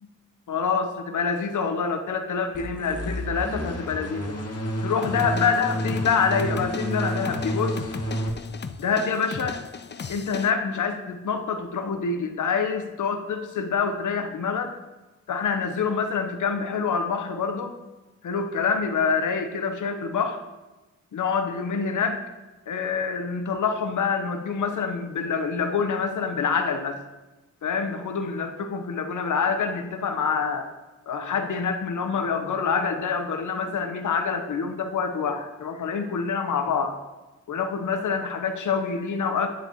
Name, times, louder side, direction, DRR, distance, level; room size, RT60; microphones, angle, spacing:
voice 1, 0.5-4.4 4.8-7.9 8.8-9.6 10.1-14.7 15.3-17.8 18.2-20.4 21.1-22.2 22.7-27.0 27.6-30.7 31.1-37.0 37.5-39.5, left 5 dB, 75° left, 7 dB, 1.0 m, -26 dB
sound 1, 2.5-8.3, right 1 dB, 50° left, 1.7 m, -30 dB
sound 2, 5.0-10.5, left 5 dB, 35° left, 0.5 m, -36 dB
9.6 x 8.1 x 3.0 m, 1.1 s
cardioid pair, 55°, 31 cm